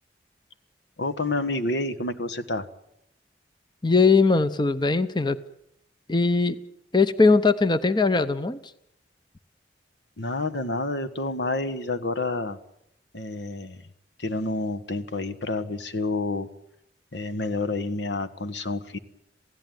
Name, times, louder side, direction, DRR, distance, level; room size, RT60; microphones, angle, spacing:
voice 1, 1.0-2.7 10.2-12.6 13.1-13.9 14.2-16.5 17.1-19.0, left 2 dB, 85° left, 11 dB, 1.5 m, -29 dB
voice 2, 3.8-5.4 6.1-6.6 6.9-8.6, left 4 dB, 25° left, 12 dB, 0.8 m, -20 dB
27.5 x 16.5 x 9.3 m, 0.81 s
head